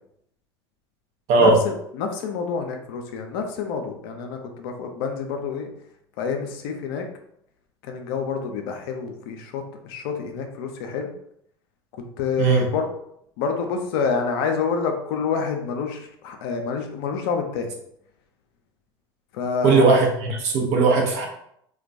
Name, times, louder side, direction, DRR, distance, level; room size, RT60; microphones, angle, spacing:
voice 1, 1.3-5.7 6.2-7.1 7.8-11.1 12.2-12.9 13.4-17.7 19.3-20.0, left 5 dB, 65° left, 4 dB, 0.5 m, -27 dB
voice 2, 19.6-21.3, right 4 dB, 55° right, 0 dB, 0.7 m, -18 dB
2.2 x 2.2 x 2.6 m, 0.73 s
hypercardioid pair, 80°, 13 cm